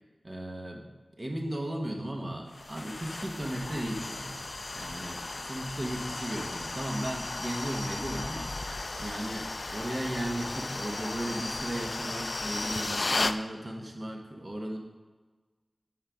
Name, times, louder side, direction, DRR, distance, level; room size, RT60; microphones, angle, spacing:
voice 1, 0.2-0.9 1.2-8.6 9.0-14.8, right 1 dB, 40° right, 1 dB, 1.1 m, -36 dB
sound 1, 2.5-13.4, left 2 dB, 55° left, 0.3 m, -35 dB
8.7 x 3.7 x 5.0 m, 1.3 s
wide cardioid pair, 45°, 0 cm